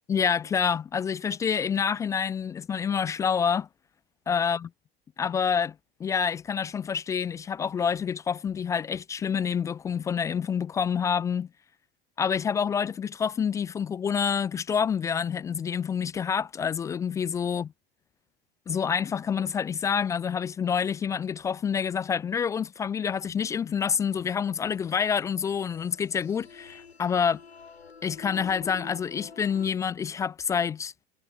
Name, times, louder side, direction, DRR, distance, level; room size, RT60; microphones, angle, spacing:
voice 1, 0.1-3.7 4.3-4.6 5.2-5.7 6.0-11.5 12.2-17.7 18.7-27.4 28.0-30.9, left 7 dB, 10° left, 0.3 m, -27 dB
sound 1, 24.7-29.7, left 5 dB, 80° left, 3.1 m, -47 dB
figure-of-eight pair, 90°, 31 cm